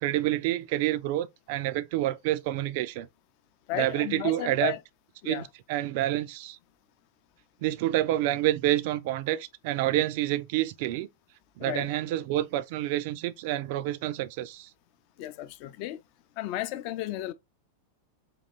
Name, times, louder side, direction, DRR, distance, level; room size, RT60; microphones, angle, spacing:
voice 1, 0.0-3.1 3.7-4.7 5.2-5.4 5.7-6.6 7.6-11.1 11.6-14.7, right 14 dB, 50° right, 0.4 m, -28 dB
voice 2, 3.7-4.8 5.2-5.5 11.6-11.9 15.2-16.0 16.4-17.3, left 15 dB, 45° left, 0.5 m, -34 dB
3.9 x 2.9 x 4.2 m
figure-of-eight pair, 90°, 0 cm